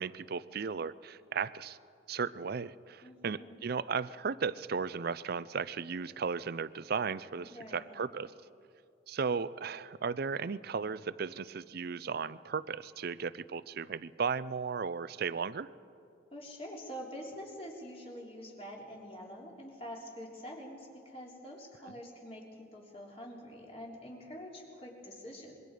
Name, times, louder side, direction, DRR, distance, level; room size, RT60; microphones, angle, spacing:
voice 1, 0.0-1.8 2.1-8.3 9.1-15.7, right 5 dB, 50° right, 17 dB, 0.5 m, -35 dB
voice 2, 3.0-3.6 7.4-8.0 16.3-25.6, equal, 30° left, -2 dB, 3.4 m, -46 dB
26.0 x 22.5 x 5.0 m, 2.5 s
head